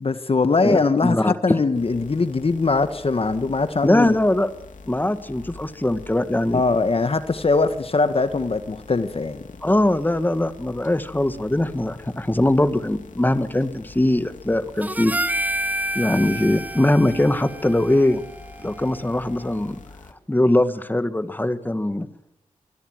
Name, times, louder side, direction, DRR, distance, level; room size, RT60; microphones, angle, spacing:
voice 1, 0.0-4.2 6.5-9.4, left 3 dB, 50° left, 11 dB, 1.6 m, -21 dB
voice 2, 0.6-1.6 3.8-4.5 4.9-6.6 9.6-15.1 16.0-18.2 18.6-19.8 20.3-22.1, left 1 dB, 15° left, 11 dB, 1.8 m, -21 dB
sound 1, 1.7-20.1, left 4 dB, 90° left, 2.9 m, -45 dB
Harmonica, 14.8-19.3, right 1 dB, 10° right, 0.8 m, -29 dB
24.0 x 22.0 x 7.9 m, 0.82 s
cardioid pair, 55°, 13 cm